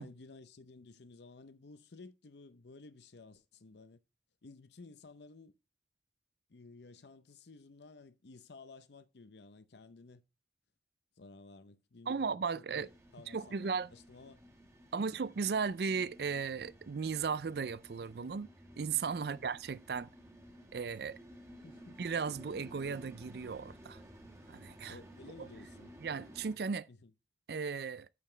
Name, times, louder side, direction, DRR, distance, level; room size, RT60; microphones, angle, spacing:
voice 1, 0.0-4.0 4.4-5.5 6.5-10.2 11.2-14.4 15.0-15.2 19.2-19.5 21.6-22.0 24.9-25.9 26.9-27.1, left 3 dB, 70° left, 0.7 m, -55 dB
voice 2, 12.1-12.9 13.3-13.9 14.9-18.5 18.8-20.1 20.7-21.2 22.0-24.0 24.5-25.0 25.4-25.5 26.0-26.9 27.5-28.1, right 5 dB, 60° right, 0.4 m, -36 dB
sound 1, 12.7-26.6, equal, 15° right, 1.6 m, -55 dB
11.0 x 7.1 x 3.3 m
head